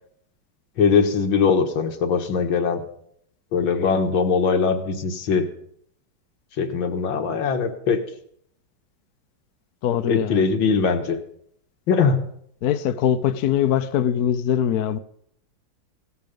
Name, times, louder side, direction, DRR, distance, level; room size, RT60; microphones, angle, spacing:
voice 1, 0.8-2.8 3.5-5.5 6.6-8.0 10.1-11.2 11.9-12.2, left 5 dB, 90° left, 2.2 m, -21 dB
voice 2, 9.8-10.4 12.6-15.0, left 9 dB, 65° left, 1.1 m, -22 dB
16.5 x 13.0 x 5.3 m
omnidirectional pair, 2.1 m